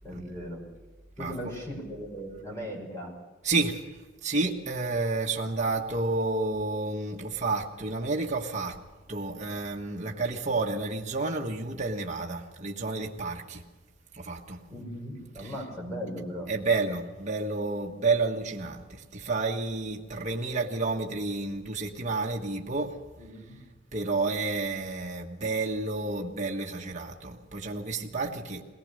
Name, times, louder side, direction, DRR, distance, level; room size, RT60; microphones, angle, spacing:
voice 1, 0.0-0.6 1.2-3.1 14.7-16.5 23.2-23.6, equal, 15° left, -1 dB, 5.4 m, -38 dB
voice 2, 1.2-1.5 3.4-3.8 4.2-8.8 9.1-13.6 14.1-14.6 15.3-15.6 16.5-23.0 23.9-28.6, right 3 dB, 35° right, 0 dB, 1.4 m, -30 dB
21.5 x 19.0 x 6.5 m, 1.3 s
head